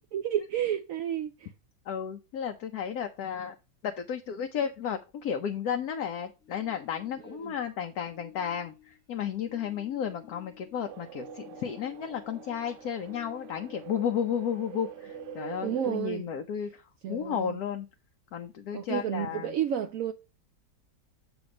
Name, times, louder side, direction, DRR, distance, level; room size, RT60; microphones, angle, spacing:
voice 1, 0.0-1.5 7.4-7.5 15.6-16.2 17.0-17.6 18.7-20.1, right 10 dB, 70° right, 0.8 m, -31 dB
voice 2, 1.9-3.5 3.8-17.9 18.3-19.5, left 8 dB, 65° left, 1.1 m, -33 dB
sound 1, 6.4-7.7 8.0-14.2 14.4-16.0, left 12 dB, 5° right, 1.1 m, -52 dB
sound 2, 10.9-16.0, right 12 dB, 85° right, 1.2 m, -45 dB
7.1 x 3.5 x 6.1 m
omnidirectional pair, 1.8 m